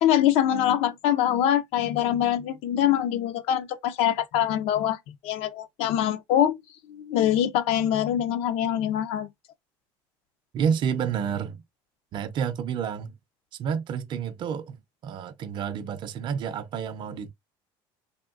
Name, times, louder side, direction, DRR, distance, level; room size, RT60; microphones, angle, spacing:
voice 1, 0.0-5.0 5.2-6.6 6.9-9.3, left 11 dB, 70° left, 0.5 m, -24 dB
voice 2, 10.5-11.6 12.1-13.1 13.6-14.8 15.0-17.3, right 7 dB, 45° right, 0.5 m, -29 dB
3.5 x 2.2 x 2.4 m
supercardioid pair, 105°, 11 cm